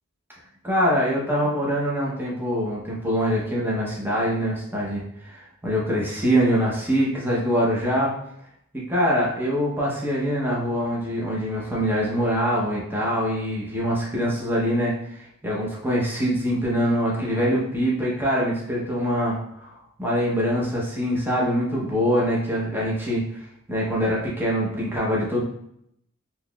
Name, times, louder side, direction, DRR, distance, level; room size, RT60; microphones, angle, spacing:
voice 1, 0.6-8.1 8.9-23.2 23.7-25.4, equal, 10° right, -5 dB, 0.7 m, -24 dB
3.9 x 2.9 x 2.2 m, 0.75 s
head